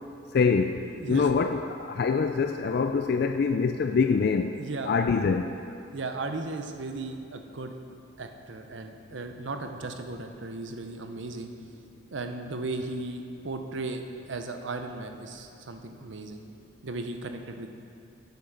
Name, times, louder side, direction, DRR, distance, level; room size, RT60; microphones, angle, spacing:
voice 1, 0.3-0.8 1.1-4.6 4.9-5.5, left 5 dB, 55° left, 6 dB, 0.3 m, -24 dB
voice 2, 0.9-1.3 4.6-4.9 5.9-7.7 8.2-11.5 12.1-16.4 16.8-17.7, right 3 dB, 75° right, 6 dB, 0.7 m, -36 dB
8.5 x 8.2 x 5.7 m, 2.8 s
head